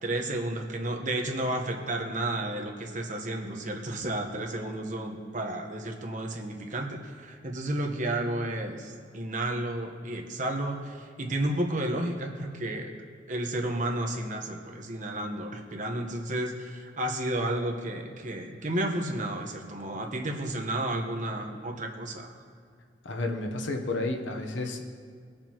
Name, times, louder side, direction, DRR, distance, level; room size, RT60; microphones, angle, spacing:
voice 1, 0.0-12.9 13.3-22.3, right 1 dB, 45° right, 2 dB, 1.1 m, -32 dB
voice 2, 23.0-24.8, left 2 dB, 85° left, 3 dB, 0.9 m, -31 dB
20.0 x 6.8 x 3.0 m, 2.1 s
head